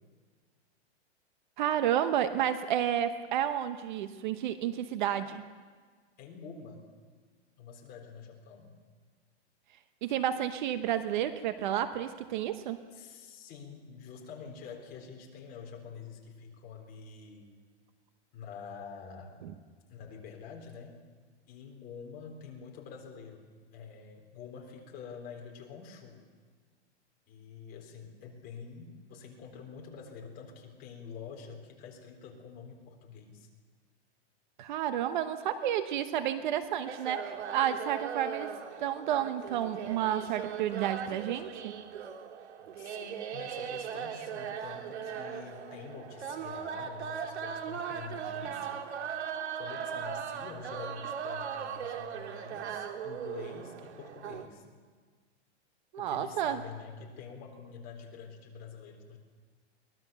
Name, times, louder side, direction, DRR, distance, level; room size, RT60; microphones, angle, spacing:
voice 1, 1.6-5.4 10.0-12.8 34.6-41.7 55.9-56.6, right 10 dB, 45° right, 10 dB, 1.0 m, -31 dB
voice 2, 6.2-6.9 7.6-8.7 12.9-17.5 18.3-19.4 19.9-21.0 21.5-26.2 27.3-33.5 42.8-48.9 49.6-54.6 56.0-59.2, left 6 dB, 25° left, 1 dB, 3.7 m, -47 dB
sound 1, 36.9-54.5, right 8 dB, 75° right, 2.2 m, -39 dB
23.5 x 19.5 x 6.9 m, 1.5 s
hypercardioid pair, 160°, 34 cm